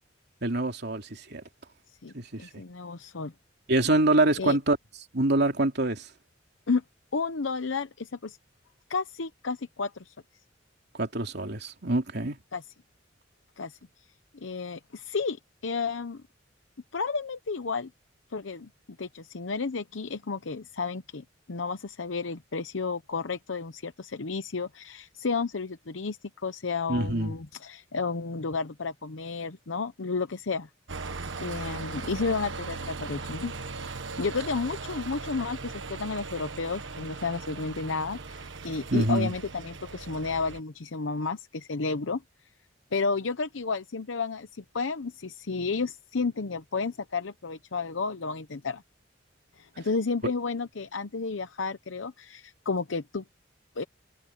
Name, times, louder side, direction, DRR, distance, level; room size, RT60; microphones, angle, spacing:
voice 1, 0.4-1.4 2.1-2.6 3.7-4.8 5.1-6.1 10.9-12.4 26.9-27.3 38.9-39.3, right 2 dB, 60° right, 3.0 m, -25 dB
voice 2, 2.4-3.3 4.4-4.6 6.7-6.8 7.1-8.4 8.9-10.1 12.5-12.6 13.6-13.8 14.3-16.2 16.9-17.9 18.3-18.7 19.0-30.7 31.4-33.5 34.2-42.2 42.9-48.8 49.6-53.2 53.8-53.9, left 4 dB, 85° left, 0.8 m, -32 dB
sound 1, 30.9-40.6, right 4 dB, 75° right, 1.5 m, -39 dB
head